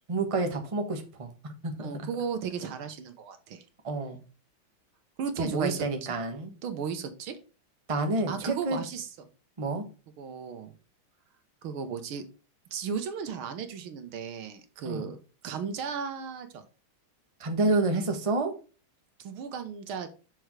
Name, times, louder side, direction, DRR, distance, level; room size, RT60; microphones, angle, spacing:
voice 1, 0.1-1.9 3.8-4.2 5.4-6.5 7.9-8.8 9.6-9.9 14.8-15.1 17.4-18.5, right 2 dB, 20° right, 5 dB, 1.0 m, -29 dB
voice 2, 1.8-3.6 5.2-5.9 6.6-7.4 8.3-9.3 10.2-10.7 11.6-12.2 12.7-15.2 15.4-16.6 19.2-20.1, right 6 dB, 80° right, 9 dB, 1.8 m, -35 dB
6.6 x 4.6 x 4.8 m, 0.34 s
omnidirectional pair, 2.3 m